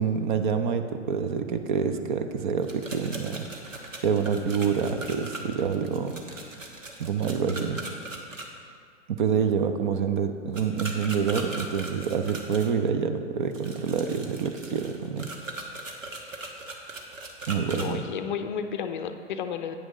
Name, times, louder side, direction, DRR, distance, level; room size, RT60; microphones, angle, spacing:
voice 1, 0.0-3.5 4.0-6.1 7.0-7.8 9.2-15.3 17.5-18.0, right 6 dB, 40° right, 7 dB, 0.6 m, -27 dB
sound 1, 2.6-8.5 10.5-12.7 13.5-17.9, right 2 dB, 85° right, 1.3 m, -39 dB
voice 2, 17.8-19.8, left 7 dB, 40° left, 8 dB, 0.5 m, -32 dB
9.0 x 6.2 x 5.0 m, 2.1 s
figure-of-eight pair, 115°, 38 cm